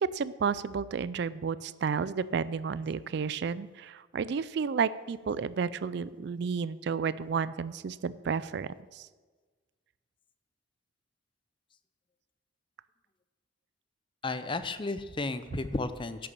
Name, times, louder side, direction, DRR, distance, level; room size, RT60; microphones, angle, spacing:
voice 1, 0.0-9.1, right 6 dB, 55° right, 17 dB, 0.3 m, -32 dB
voice 2, 14.2-16.3, left 3 dB, 25° left, 12 dB, 0.5 m, -33 dB
10.5 x 6.9 x 7.5 m, 1.4 s
head